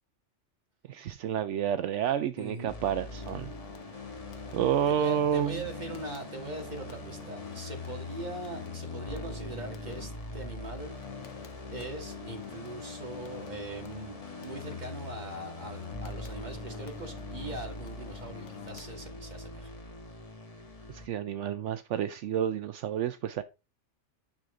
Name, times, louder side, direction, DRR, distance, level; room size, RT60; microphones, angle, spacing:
voice 1, 0.9-3.5 4.5-5.7 20.9-23.4, right 9 dB, 75° right, 0.9 m, -30 dB
voice 2, 2.4-2.7 4.9-10.9 11.2-11.3 11.7-19.8, right 2 dB, 35° right, 2.3 m, -41 dB
sound 1, 2.7-21.1, left 2 dB, 30° left, 1.4 m, -43 dB
sound 2, 3.0-19.5, left 8 dB, 75° left, 1.1 m, -48 dB
10.5 x 6.4 x 3.9 m
omnidirectional pair, 1.3 m